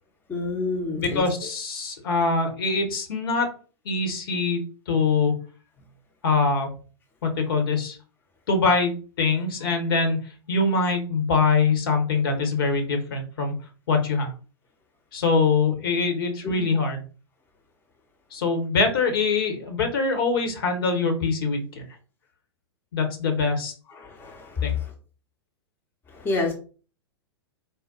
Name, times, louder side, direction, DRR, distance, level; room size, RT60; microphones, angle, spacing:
voice 1, 0.3-1.2 16.4-16.7 23.9-24.7 26.1-26.5, left 3 dB, 15° left, 1 dB, 0.8 m, -28 dB
voice 2, 0.9-3.5 3.8-4.6 4.9-5.4 6.2-6.7 7.2-8.0 8.5-8.9 9.2-10.2 10.5-13.5 13.9-14.3 15.1-17.0 18.3-21.6 22.9-23.7 24.6-24.7, left 4 dB, 55° left, 5 dB, 1.1 m, -23 dB
4.1 x 2.2 x 3.8 m, 0.37 s
figure-of-eight pair, 100°, 14 cm